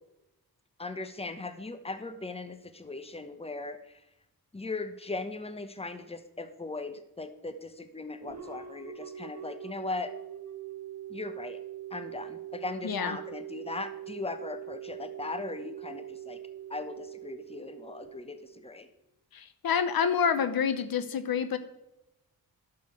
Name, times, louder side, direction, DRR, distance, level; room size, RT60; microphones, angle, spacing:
voice 1, 0.8-4.0 4.5-10.1 11.1-11.6 11.9-16.4 16.7-18.9, left 3 dB, 15° left, 10 dB, 1.1 m, -38 dB
sound 1, 8.2-18.9, right 11 dB, 50° right, 1.9 m, -43 dB
voice 2, 12.8-13.2 19.3-21.6, left 7 dB, 75° left, 11 dB, 1.0 m, -28 dB
10.0 x 6.9 x 6.9 m, 0.91 s
cardioid pair, 65°, 36 cm